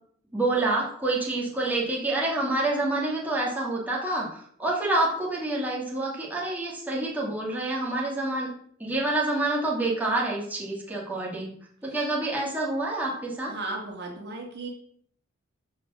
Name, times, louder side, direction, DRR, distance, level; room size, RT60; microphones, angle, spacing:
voice 1, 0.3-8.5 8.8-11.5 11.8-13.5, right 2 dB, 10° right, -4 dB, 2.8 m, -27 dB
voice 2, 13.5-14.7, right 2 dB, 55° right, 0 dB, 2.9 m, -35 dB
14.5 x 5.3 x 6.5 m, 0.63 s
head